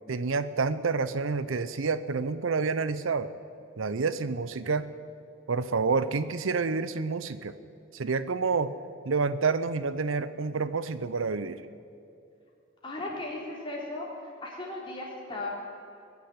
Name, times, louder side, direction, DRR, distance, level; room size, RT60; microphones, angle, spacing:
voice 1, 0.1-3.3 3.8-4.9 5.5-7.5 7.9-8.8 9.0-11.6, right 4 dB, 90° right, 14 dB, 0.7 m, -28 dB
voice 2, 12.8-14.1 14.4-15.5, left 2 dB, 25° left, -4 dB, 3.5 m, -36 dB
21.0 x 7.0 x 9.6 m, 2.5 s
head